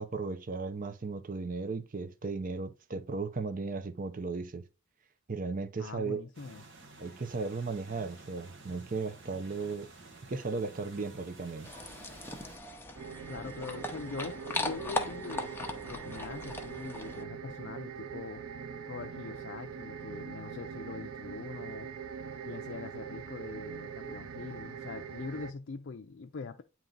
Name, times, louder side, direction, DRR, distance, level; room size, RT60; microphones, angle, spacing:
voice 1, 0.0-4.6 5.3-6.2 7.0-9.9 10.3-11.7, right 4 dB, 40° right, 0.6 m, -36 dB
voice 2, 5.8-6.6 13.3-18.4 18.9-21.9 22.4-26.6, left 4 dB, 55° left, 0.5 m, -43 dB
sound 1, 6.3-12.6, right 3 dB, 60° right, 1.2 m, -52 dB
sound 2, 11.6-17.2, left 2 dB, 10° left, 0.7 m, -39 dB
sound 3, 12.9-25.5, right 6 dB, 85° right, 0.5 m, -42 dB
8.9 x 3.0 x 3.9 m
head